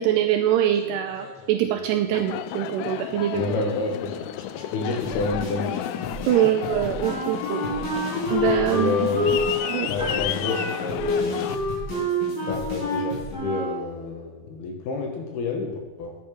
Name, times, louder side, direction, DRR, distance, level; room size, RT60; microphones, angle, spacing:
voice 1, 0.0-3.4 6.3-7.6 8.3-9.1 9.7-9.9, right 11 dB, 85° right, 6 dB, 2.4 m, -23 dB
sound 1, 0.7-3.2 3.7-13.3, left 2 dB, 50° left, 6.4 m, -37 dB
Aircraft, 2.1-11.6, left 13 dB, 85° left, 2.7 m, -32 dB
voice 2, 3.3-6.0 6.4-6.5 8.7-9.3 9.7-11.5 12.5-16.2, left 4 dB, 65° left, 3 dB, 3.1 m, -29 dB
Wind instrument woodwind instrument, 7.0-13.8, left 1 dB, 5° left, 4.4 m, -28 dB
10.5 x 10.0 x 5.8 m, 1.2 s
omnidirectional pair, 5.4 m